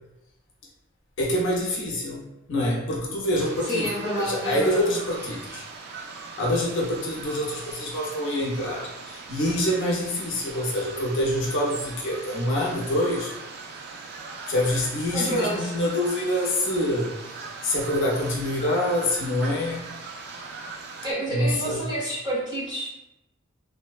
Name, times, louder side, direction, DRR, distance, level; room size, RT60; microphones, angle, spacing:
voice 1, 1.2-3.9 4.2-5.6 6.4-13.3 14.5-17.1 17.6-19.8 21.3-21.8, left 1 dB, 60° left, -3 dB, 0.6 m, -26 dB
sound 1, 3.3-21.1, right 4 dB, 55° right, 0.3 m, -40 dB
voice 2, 3.6-4.9 15.1-15.7 21.0-22.9, right 1 dB, 20° right, -7 dB, 0.8 m, -29 dB
2.6 x 2.1 x 2.4 m, 0.92 s
head